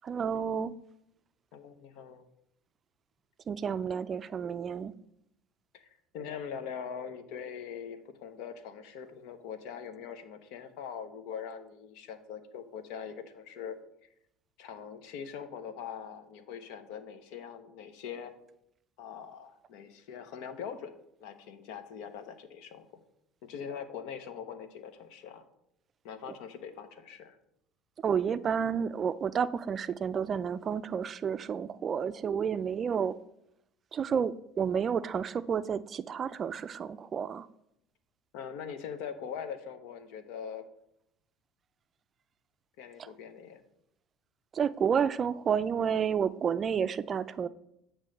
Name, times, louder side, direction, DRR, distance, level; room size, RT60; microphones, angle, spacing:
voice 1, 0.0-0.7 3.5-4.9 26.3-26.4 28.0-33.1 33.9-37.5 44.5-47.5, right 7 dB, 40° right, 15 dB, 0.4 m, -30 dB
voice 2, 1.5-2.2 5.7-13.8 14.6-18.3 19.0-20.9 21.2-22.8 23.4-25.4 26.0-27.4 38.3-40.6 42.8-43.6, left 7 dB, 70° left, 10 dB, 0.8 m, -42 dB
8.3 x 3.1 x 6.4 m, 0.80 s
supercardioid pair, 90°, 0 cm